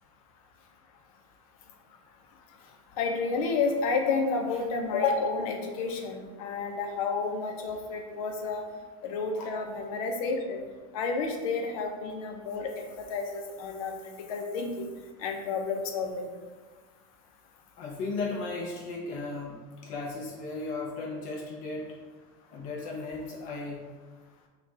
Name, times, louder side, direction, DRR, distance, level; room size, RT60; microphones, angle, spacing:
voice 1, 3.0-8.6 9.0-10.6 10.9-14.9 15.2-16.2, left 4 dB, 90° left, 3 dB, 0.7 m, -30 dB
voice 2, 17.8-22.0 22.5-23.8, left 3 dB, 50° left, -1 dB, 0.6 m, -36 dB
5.0 x 2.3 x 2.8 m, 1.3 s
supercardioid pair, 150°, 18 cm